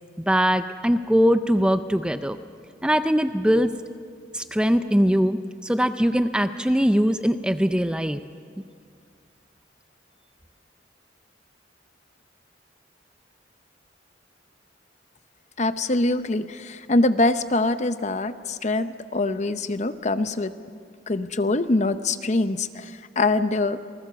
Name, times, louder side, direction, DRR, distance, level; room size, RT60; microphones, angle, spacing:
voice 1, 0.2-2.4 2.8-3.7 4.3-8.2, equal, 5° right, 10 dB, 0.5 m, -21 dB
voice 2, 15.6-20.5 21.1-23.8, left 2 dB, 40° left, 11 dB, 0.8 m, -24 dB
28.0 x 19.5 x 6.9 m, 2.1 s
head